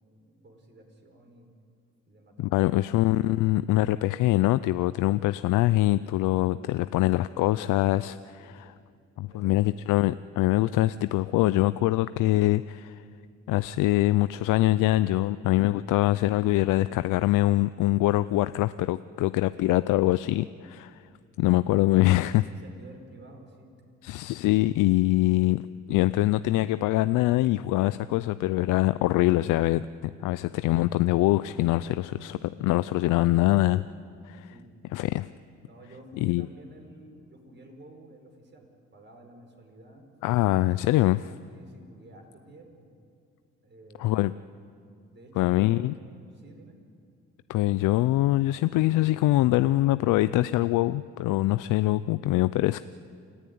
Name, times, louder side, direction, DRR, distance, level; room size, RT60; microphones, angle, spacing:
voice 1, 0.0-1.6 2.1-2.8 3.3-3.5 6.6-6.9 8.4-8.7 9.3-9.6 22.1-23.7 26.0-26.2 32.2-32.5 34.5-34.8 35.7-40.1 41.5-43.0 43.6-44.4 45.1-45.9 46.3-46.8, right 2 dB, 35° right, 3 dB, 5.2 m, -51 dB
voice 2, 2.4-8.4 9.2-13.0 13.5-21.0 21.4-22.5 24.0-25.6 25.9-33.8 34.2-34.5 34.9-35.3 36.2-36.5 40.2-41.3 44.0-44.3 45.4-45.9 47.5-52.8, left 17 dB, 90° left, 14 dB, 0.5 m, -24 dB
29.0 x 14.5 x 9.4 m, 2.3 s
cardioid pair, 90°, 30 cm